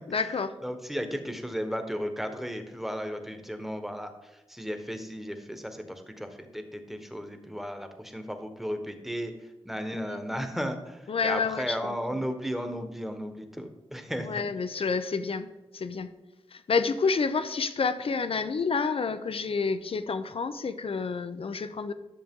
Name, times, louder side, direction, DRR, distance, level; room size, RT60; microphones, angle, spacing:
voice 1, 0.1-0.5 9.9-10.2 11.1-12.0 14.2-15.5 15.7-16.1 16.5-21.9, left 5 dB, 65° left, 11 dB, 0.7 m, -29 dB
voice 2, 0.6-4.1 4.5-9.3 9.6-14.3, equal, ahead, 6 dB, 1.2 m, -34 dB
11.0 x 6.7 x 3.7 m, 1.0 s
cardioid pair, 50°, 10 cm